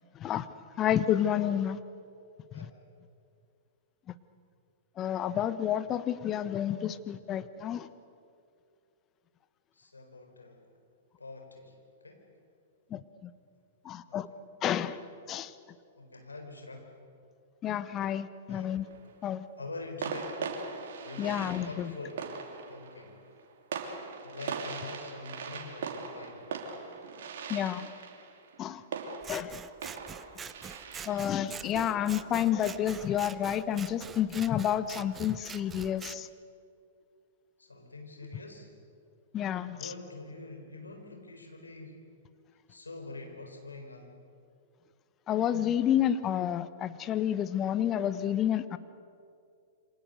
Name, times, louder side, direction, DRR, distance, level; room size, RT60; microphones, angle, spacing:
voice 1, 0.8-1.8 2.5-2.7 5.0-7.9 12.9-13.3 13.8-14.3 14.6-15.0 15.3-15.5 17.6-18.9 19.2-19.5 21.2-21.9 27.5-27.9 28.6-28.8 29.3-29.6 31.1-36.3 39.3-39.9 45.3-48.8, left 10 dB, 30° left, 14 dB, 1.1 m, -30 dB
voice 2, 9.7-10.6 11.2-11.8 12.0-12.2 14.1-14.4 16.0-16.9 18.5-18.8 19.6-20.5 21.0-22.3 22.7-23.2 24.2-26.5 37.6-38.7 39.7-42.0 42.7-44.2, left 3 dB, 85° left, 4 dB, 4.4 m, -45 dB
sound 1, 18.5-19.1 20.0-33.4, right 5 dB, 60° right, 3.2 m, -41 dB
Scissors, 29.2-36.2, right 6 dB, 20° right, 0.9 m, -45 dB
28.0 x 25.5 x 6.8 m, 2.4 s
figure-of-eight pair, 105°, 0 cm